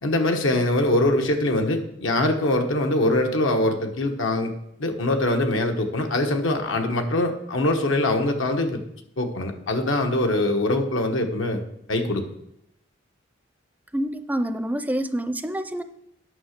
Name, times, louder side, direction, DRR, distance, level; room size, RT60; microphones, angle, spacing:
voice 1, 0.0-4.5 4.8-8.8 9.2-11.6 11.9-12.2, left 1 dB, 85° left, 4 dB, 1.2 m, -23 dB
voice 2, 13.9-15.8, right 1 dB, 10° right, 10 dB, 0.4 m, -27 dB
9.6 x 5.9 x 6.6 m, 0.79 s
head